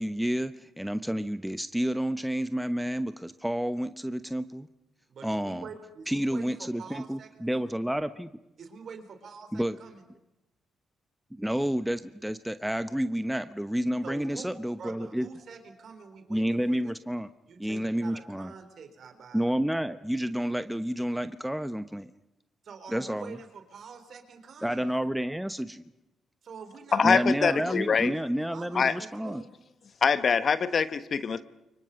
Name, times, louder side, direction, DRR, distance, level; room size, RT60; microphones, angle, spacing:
voice 1, 0.0-4.7 5.2-5.7 6.1-8.3 9.5-9.8 11.3-15.3 16.3-17.3 17.6-18.5 19.3-22.1 22.9-23.4 24.6-25.8 27.0-29.4, equal, 5° right, 11 dB, 1.0 m, -30 dB
voice 2, 5.1-7.8 8.6-9.9 14.0-14.5 14.8-16.9 17.5-19.4 22.6-24.9 26.4-28.2 28.5-29.5, right 5 dB, 60° right, 7 dB, 3.9 m, -46 dB
voice 3, 26.9-28.1 28.7-28.9 30.0-31.4, left 6 dB, 50° left, 13 dB, 1.2 m, -24 dB
30.0 x 24.5 x 5.4 m, 0.94 s
hypercardioid pair, 45°, 0 cm